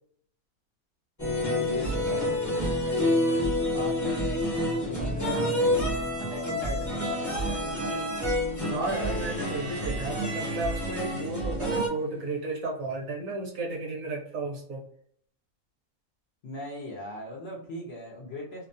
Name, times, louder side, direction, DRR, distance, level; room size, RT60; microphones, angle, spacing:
sound 1, 1.2-11.9, left 1 dB, 15° left, 0.8 m, -28 dB
voice 1, 1.7-4.5 4.8-8.3 16.4-18.7, left 1 dB, 60° left, -3 dB, 0.7 m, -40 dB
voice 2, 8.7-14.8, right 2 dB, 65° right, -1 dB, 1.3 m, -33 dB
sound 2, 8.8-12.7, right 1 dB, 30° right, 0.7 m, -46 dB
2.8 x 2.1 x 2.5 m, 0.64 s
omnidirectional pair, 1.6 m